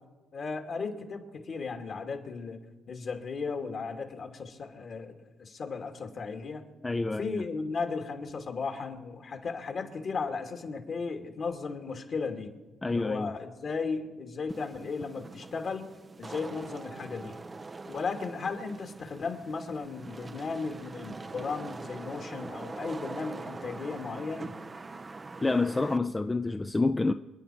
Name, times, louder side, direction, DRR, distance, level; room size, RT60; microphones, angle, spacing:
voice 1, 0.3-2.6 2.9-6.7 7.1-12.5 12.9-15.9 16.2-17.4 17.9-24.5, left 4 dB, 50° left, 2.4 m, -35 dB
voice 2, 6.8-7.4 12.8-13.3 25.4-27.1, left 3 dB, 20° left, 0.5 m, -28 dB
Wind / Rain, 14.5-26.0, right 3 dB, 30° right, 0.5 m, -43 dB
27.5 x 9.6 x 4.5 m
supercardioid pair, 75°, 0 cm